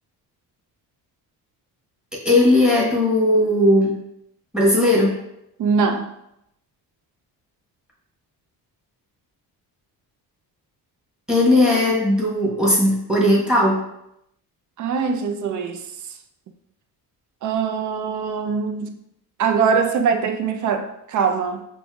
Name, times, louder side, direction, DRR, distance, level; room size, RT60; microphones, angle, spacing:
voice 1, 2.2-4.0 4.5-5.1 11.3-13.8, left 1 dB, ahead, 1.1 m, -17 dB
voice 2, 5.6-6.1 14.8-15.8 17.4-19.0 19.4-21.7, right 5 dB, 50° right, 0.5 m, -22 dB
5.4 x 2.6 x 2.3 m
cardioid pair, 120°, 39 cm